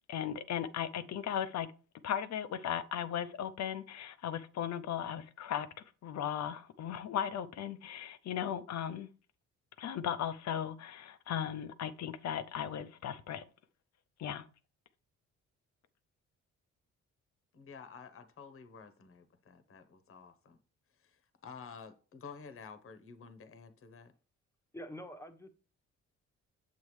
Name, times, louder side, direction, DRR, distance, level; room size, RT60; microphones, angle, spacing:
voice 1, 0.1-1.7 2.0-5.7 6.0-9.1 9.8-13.4 14.2-14.5, left 9 dB, 65° left, 0.6 m, -37 dB
voice 2, 17.5-20.6 21.0-24.1, left 5 dB, 45° left, 1.0 m, -51 dB
voice 3, 24.7-25.5, equal, 10° left, 1.0 m, -46 dB
7.5 x 7.2 x 3.2 m
cardioid pair, 90°, 30 cm